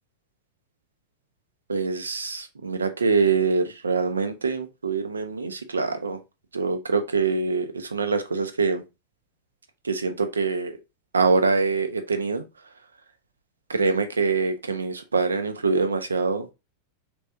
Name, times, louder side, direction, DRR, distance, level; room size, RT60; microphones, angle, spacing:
voice 1, 1.7-6.2 6.5-8.8 9.8-10.7 11.1-12.4 13.7-16.5, right 4 dB, 75° right, 0.5 m, -24 dB
3.2 x 2.6 x 3.4 m
figure-of-eight pair, 90°, 0 cm